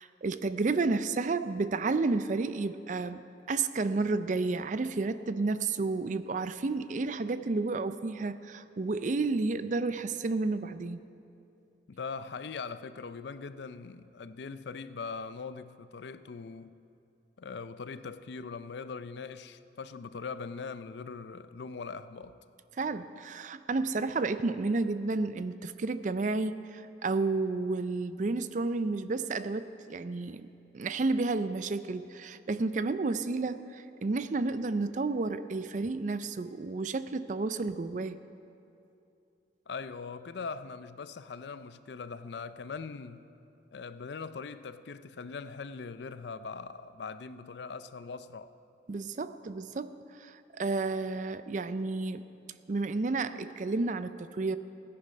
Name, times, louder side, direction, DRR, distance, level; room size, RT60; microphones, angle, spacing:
voice 1, 0.0-3.2 3.5-11.0 22.8-38.2 48.9-52.3 52.7-54.6, right 3 dB, 45° right, 0.4 m, -31 dB
voice 2, 11.9-16.7 17.4-22.4 39.7-43.2 43.7-48.5, left 5 dB, 70° left, 0.5 m, -41 dB
16.5 x 10.0 x 5.5 m
head